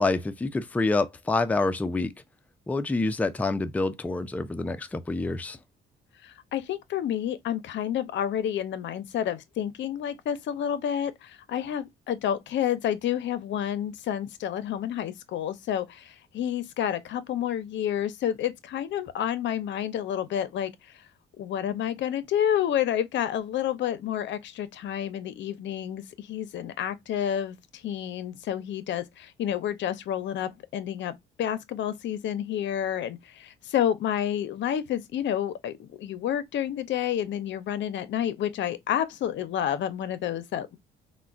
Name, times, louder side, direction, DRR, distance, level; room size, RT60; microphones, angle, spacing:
voice 1, 0.0-2.1 2.7-5.6, left 3 dB, 10° left, 0.3 m, -27 dB
voice 2, 6.2-20.7 21.4-27.6 27.8-40.8, left 10 dB, 65° left, 0.5 m, -29 dB
3.7 x 2.1 x 2.3 m
cardioid pair, 90°, 20 cm